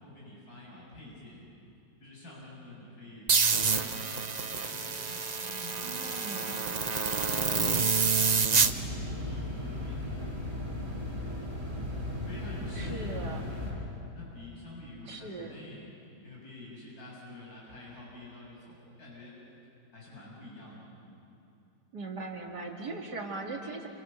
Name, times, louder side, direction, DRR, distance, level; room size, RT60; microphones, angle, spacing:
voice 1, 0.0-1.4 2.0-6.9 7.3-10.1 10.6-11.0 12.3-15.9 16.2-19.3 19.9-20.9, left 1 dB, 55° left, -5 dB, 7.7 m, -48 dB
sound 1, 3.3-8.7, right 5 dB, 40° right, 0.6 m, -27 dB
voice 2, 5.7-6.8 12.8-13.4 15.1-15.6 21.9-23.9, right 3 dB, 65° right, 0 dB, 2.9 m, -39 dB
sound 2, 8.6-13.7, left 1 dB, 15° right, 8.0 m, -36 dB
29.5 x 27.5 x 6.9 m, 2.8 s
omnidirectional pair, 1.9 m